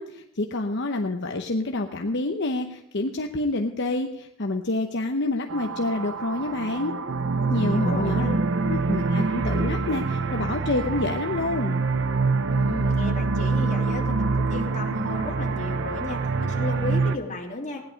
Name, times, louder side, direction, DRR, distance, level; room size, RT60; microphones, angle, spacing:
voice 1, 0.0-6.9 7.5-8.3 8.6-11.8, left 2 dB, 55° left, 4 dB, 0.9 m, -28 dB
sound 1, 5.5-17.2, right 3 dB, 60° right, 0.7 m, -25 dB
voice 2, 7.5-8.5 12.5-17.8, left 2 dB, 35° left, -3 dB, 2.9 m, -34 dB
17.0 x 11.0 x 5.2 m, 0.84 s
head